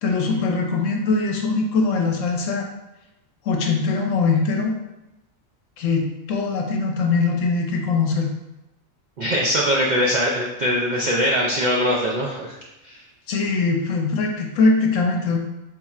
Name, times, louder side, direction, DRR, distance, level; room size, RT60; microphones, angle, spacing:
voice 1, 0.0-2.7 3.5-4.7 5.8-8.3 13.3-15.4, left 4 dB, 70° left, 1 dB, 0.9 m, -21 dB
voice 2, 9.2-12.5 12.8-13.0, equal, 85° right, -3 dB, 0.4 m, -21 dB
4.1 x 2.4 x 4.1 m, 0.96 s
omnidirectional pair, 1.4 m